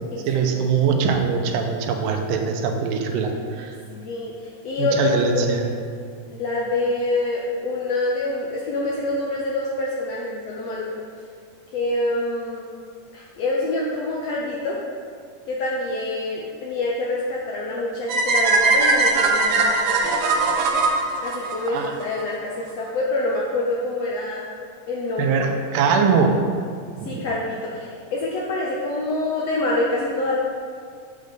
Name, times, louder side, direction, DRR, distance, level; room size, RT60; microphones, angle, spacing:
voice 1, 0.3-3.8 4.8-5.7 21.7-21.9 25.2-26.4 27.0-27.3, right 5 dB, 90° right, 4 dB, 2.5 m, -22 dB
voice 2, 3.9-5.8 6.3-10.9 11.7-12.7 13.1-14.8 15.5-20.0 21.2-24.5 24.9-25.4 25.8-25.9 27.0-30.4, left 2 dB, 75° left, -3 dB, 1.5 m, -26 dB
sound 1, 18.1-22.2, right 3 dB, 75° right, 2.3 m, -20 dB
7.5 x 5.2 x 6.7 m, 2.1 s
omnidirectional pair, 3.8 m